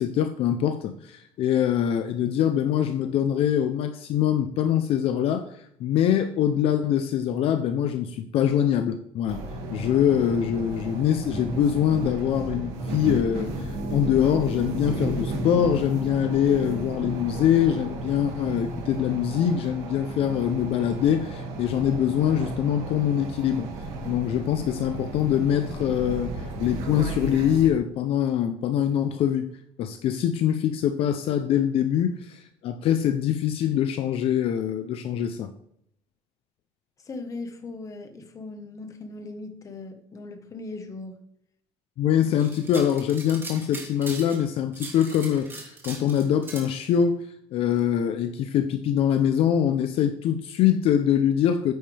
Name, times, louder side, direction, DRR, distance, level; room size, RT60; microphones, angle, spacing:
voice 1, 0.0-9.4 9.7-23.7 24.0-29.5 29.8-35.5 42.0-51.7, left 9 dB, 60° left, 9 dB, 0.7 m, -24 dB
sound 1, 9.3-27.7, right 2 dB, 90° right, 2.2 m, -33 dB
voice 2, 37.0-41.2, left 3 dB, 30° left, 7 dB, 1.4 m, -38 dB
sound 2, 42.4-44.4 44.7-46.7, right 3 dB, 20° right, 2.0 m, -40 dB
9.0 x 8.7 x 3.5 m, 0.71 s
cardioid pair, 130°, 11 cm